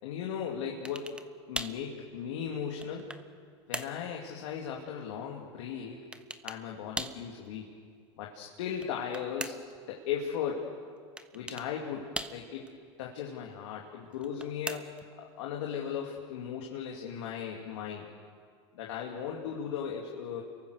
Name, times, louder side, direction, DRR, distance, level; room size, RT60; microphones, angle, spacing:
voice 1, 0.0-1.2 1.5-3.1 3.7-6.0 6.4-7.7 8.2-9.6 9.9-10.7 11.3-12.7 13.0-18.1 18.7-20.4, left 8 dB, 75° left, -1 dB, 2.8 m, -37 dB
sound 1, 0.9-1.3 1.6-1.8 2.5-3.3 3.7-4.0 6.1-6.6 7.0-7.3 8.7-9.8 11.2-11.7 12.2-12.7 14.1-15.1, right 2 dB, 5° right, 1.1 m, -39 dB
29.0 x 23.0 x 6.6 m, 2.1 s
hypercardioid pair, 105°, 15 cm